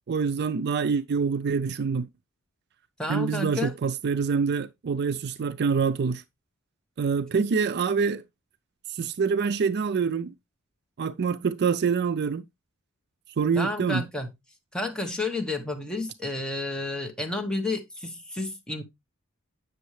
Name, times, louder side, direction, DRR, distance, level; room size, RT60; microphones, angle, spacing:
voice 1, 0.1-2.1 3.1-6.2 7.0-8.2 8.9-10.3 11.0-12.4 13.4-14.0, right 5 dB, 50° right, 0.4 m, -26 dB
voice 2, 3.0-3.7 13.5-14.3 14.7-18.8, left 2 dB, 5° left, 1.2 m, -31 dB
8.0 x 6.2 x 3.1 m
head